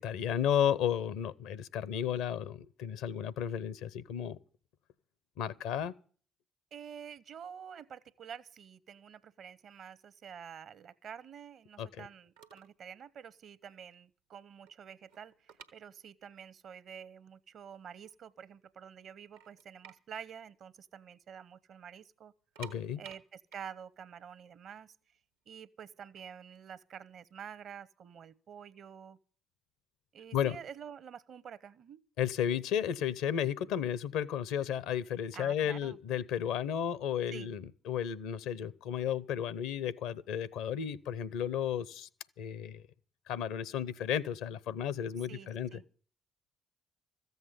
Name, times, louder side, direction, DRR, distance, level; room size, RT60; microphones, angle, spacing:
voice 1, 0.0-4.4 5.4-5.9 11.8-11.9 22.6-23.0 30.3-30.6 32.2-42.1 42.4-42.8 43.3-45.7, left 9 dB, 75° left, 0.7 m, -33 dB
voice 2, 6.7-22.3 23.0-24.9 25.5-29.2 30.1-32.0 35.3-36.0 37.3-37.5 45.3-45.8, right 8 dB, 60° right, 0.9 m, -48 dB
sound 1, 12.4-12.8 13.1-13.3 13.8-13.9 14.2-16.5 16.7-16.8 17.5-17.6 17.9-18.6 19.0-19.1 19.4-21.3 21.6-21.7 22.3-25.2 26.0-27.7, right 8 dB, 85° right, 1.1 m, -54 dB
14.5 x 8.0 x 9.5 m
hypercardioid pair, 45°, 0 cm